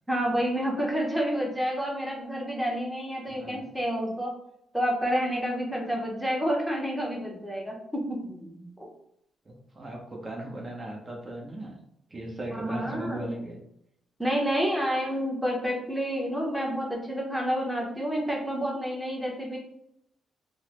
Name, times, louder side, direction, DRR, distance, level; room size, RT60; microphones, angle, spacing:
voice 1, 0.1-4.3 4.7-8.9 12.5-13.3 14.2-19.6, equal, ahead, -2 dB, 0.8 m, -29 dB
voice 2, 3.3-3.6 9.4-11.8 12.1-13.6, right 1 dB, 30° right, -1 dB, 0.8 m, -37 dB
3.6 x 2.0 x 3.0 m, 0.75 s
cardioid pair, 95°, 0 cm